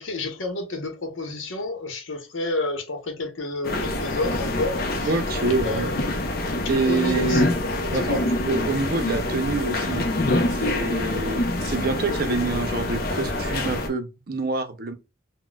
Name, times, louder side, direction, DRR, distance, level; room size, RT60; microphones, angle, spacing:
voice 1, 0.0-5.2 5.6-6.2 6.9-7.4 7.9-8.2, left 2 dB, 80° left, 0.8 m, -30 dB
sound 1, 3.6-13.9, left 1 dB, 50° left, 0.6 m, -26 dB
voice 2, 5.0-5.9 6.7-7.5 7.9-10.1 10.5-14.9, right 3 dB, 50° right, 0.5 m, -26 dB
4.0 x 2.1 x 2.3 m
head